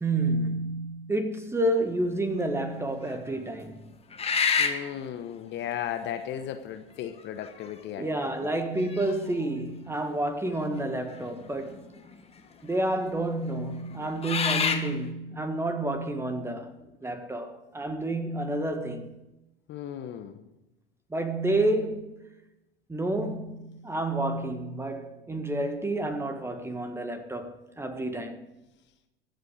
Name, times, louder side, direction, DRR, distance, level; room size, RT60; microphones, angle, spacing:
voice 1, 0.0-3.9 8.0-11.9 12.6-16.8 17.0-19.1 21.1-22.1 22.9-28.5, right 1 dB, 10° right, 1.7 m, -29 dB
sound 1, 2.0-2.4 3.1-3.2 4.1-4.9 6.1-6.2 7.2-7.7 8.1-8.2 8.8-9.5 11.1-11.2 11.5-12.1 12.8-12.9 13.9-14.9, left 6 dB, 20° left, 1.6 m, -28 dB
voice 2, 4.6-8.5 19.7-20.5, left 10 dB, 35° left, 1.1 m, -36 dB
23.0 x 8.0 x 4.9 m
figure-of-eight pair, 85°, 30 cm